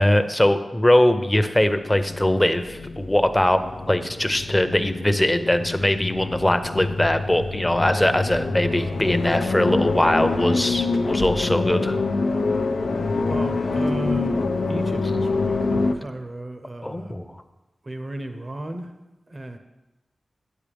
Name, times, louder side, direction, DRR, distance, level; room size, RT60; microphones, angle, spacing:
voice 1, 0.0-12.0 16.8-17.3, left 1 dB, 15° left, 9 dB, 0.7 m, -21 dB
sound 1, 1.8-15.9, left 3 dB, 85° left, 0.6 m, -26 dB
voice 2, 13.2-17.2 17.8-18.9 19.3-19.6, right 1 dB, 40° right, 7 dB, 0.8 m, -34 dB
9.4 x 8.8 x 3.5 m, 1.1 s
cardioid pair, 55°, 0 cm